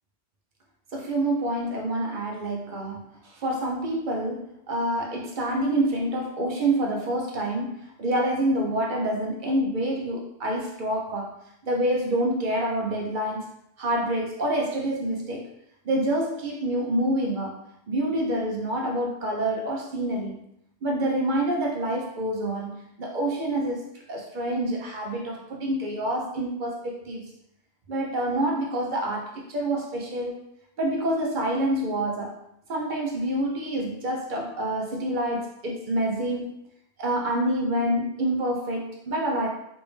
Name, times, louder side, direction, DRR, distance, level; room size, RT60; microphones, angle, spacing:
voice 1, 0.9-11.3 11.6-13.5 13.8-15.5 15.8-17.6 17.9-20.4 20.8-23.8 24.1-27.3 27.9-30.4 30.8-32.4 32.7-36.5 37.0-39.5, right 1 dB, 55° right, -1 dB, 0.7 m, -27 dB
3.3 x 2.6 x 3.1 m, 0.76 s
omnidirectional pair, 1.1 m